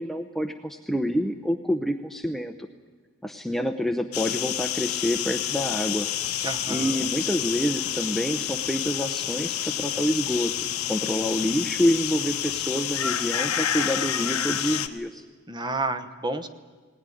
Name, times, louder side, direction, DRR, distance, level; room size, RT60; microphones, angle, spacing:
voice 1, 0.0-2.7 3.2-6.1 6.7-10.5 10.9-15.2, equal, ahead, 5 dB, 0.7 m, -27 dB
sound 1, 4.1-14.9, left 10 dB, 85° left, 1.1 m, -29 dB
voice 2, 6.4-7.1 15.5-16.5, right 2 dB, 20° right, 10 dB, 1.0 m, -30 dB
19.5 x 19.0 x 9.9 m, 1.4 s
head